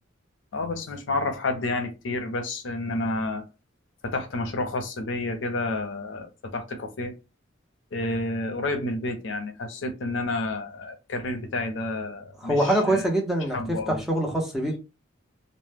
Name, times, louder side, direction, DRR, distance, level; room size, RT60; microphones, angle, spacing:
voice 1, 0.5-3.5 4.0-7.1 7.9-13.0 13.5-14.0, left 2 dB, 70° left, 0.5 m, -30 dB
voice 2, 12.4-14.8, right 1 dB, ahead, 0.6 m, -24 dB
2.0 x 2.0 x 3.2 m
head